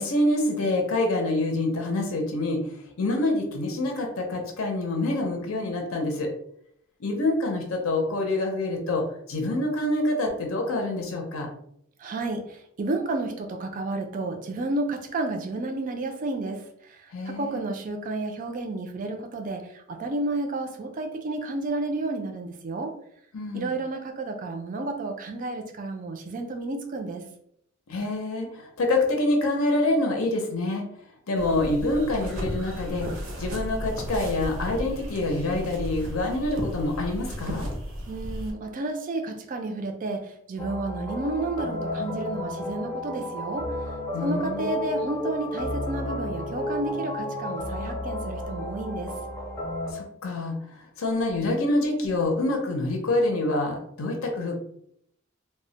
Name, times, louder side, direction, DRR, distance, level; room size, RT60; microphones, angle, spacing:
voice 1, 0.0-2.6 3.0-6.3 7.0-9.0 9.3-11.5 17.1-17.6 23.3-23.7 27.9-30.8 31.3-33.1 33.4-37.7 44.1-44.8 49.9-50.6 51.0-54.5, left 2 dB, 75° left, 2 dB, 0.5 m, -26 dB
voice 2, 12.0-22.9 23.5-27.2 38.1-43.7 44.2-49.1, right 2 dB, 40° right, 4 dB, 0.4 m, -31 dB
sound 1, 31.3-38.5, equal, 70° right, 0.6 m, -34 dB
sound 2, 40.6-49.9, left 1 dB, 10° left, 0.5 m, -32 dB
2.1 x 2.0 x 3.8 m, 0.71 s
head